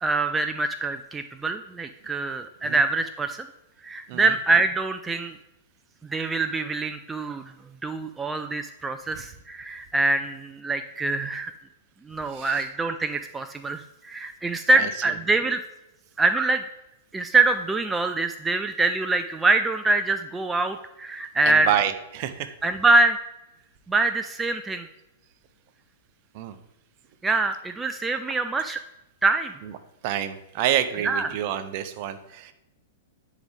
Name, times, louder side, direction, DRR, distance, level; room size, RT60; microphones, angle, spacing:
voice 1, 0.0-3.5 3.8-5.3 6.1-7.5 7.8-11.5 12.1-15.6 16.2-16.6 17.1-21.7 22.6-23.2 23.9-24.9 27.2-28.8 29.2-29.5 31.0-31.3, right 3 dB, 10° right, 8 dB, 0.4 m, -24 dB
voice 2, 12.3-12.6 14.7-14.9 21.5-22.5 26.3-26.6 30.0-32.5, right 11 dB, 45° right, 11 dB, 0.7 m, -28 dB
10.5 x 4.7 x 3.5 m, 0.93 s
figure-of-eight pair, 105°, 0 cm